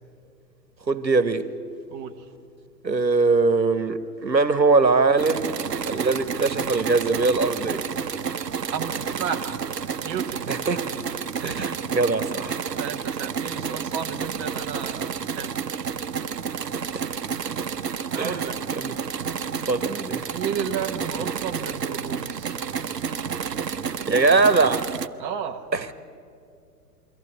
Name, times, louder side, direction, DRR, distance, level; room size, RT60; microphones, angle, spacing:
voice 1, 0.9-1.4 2.8-5.5 5.9-7.8 10.5-10.9 11.4-12.6 16.9-17.0 18.2-18.4 18.8-18.9 19.7-20.2 24.1-24.8 25.7-25.9, right 3 dB, 85° right, 13 dB, 1.2 m, -21 dB
sound 1, 5.2-25.1, right 6 dB, 70° right, 0.9 m, -30 dB
voice 2, 8.7-9.6 10.0-10.5 11.4-11.6 12.8-15.9 18.1-18.6 20.2-22.5 25.2-25.7, right 7 dB, 20° right, 5 dB, 0.9 m, -33 dB
23.0 x 15.0 x 10.0 m, 2.5 s
figure-of-eight pair, 110°, 50 cm